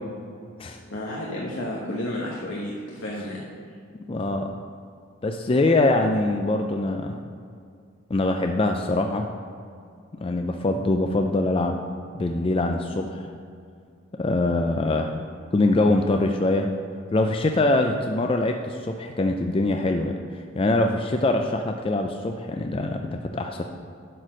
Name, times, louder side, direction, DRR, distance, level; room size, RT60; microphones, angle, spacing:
voice 1, 0.9-3.4, left 1 dB, 85° left, -3 dB, 1.1 m, -31 dB
voice 2, 4.1-4.5 5.2-7.2 8.1-9.3 10.2-11.8 12.1-13.3 14.2-15.1 15.5-16.7 17.1-23.6, left 2 dB, 30° left, 4 dB, 0.4 m, -23 dB
11.0 x 4.2 x 6.4 m, 2.3 s
head